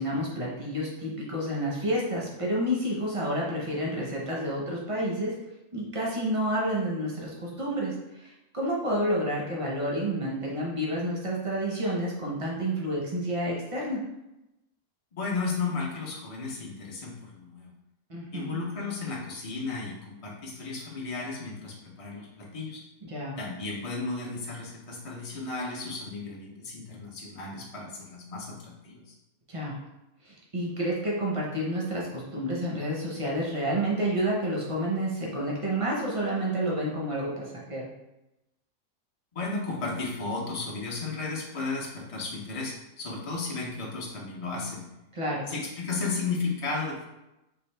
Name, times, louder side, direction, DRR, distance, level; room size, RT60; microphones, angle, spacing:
voice 1, 0.0-5.4 5.7-14.0 18.1-18.6 23.1-23.3 29.5-29.8 30.3-37.9 45.1-45.5, equal, 40° right, -3 dB, 0.5 m, -29 dB
voice 2, 15.1-17.7 18.3-22.8 23.4-29.0 39.3-44.8 45.5-47.0, left 4 dB, 60° left, -3 dB, 0.3 m, -34 dB
3.8 x 2.5 x 3.2 m, 0.93 s
omnidirectional pair, 1.5 m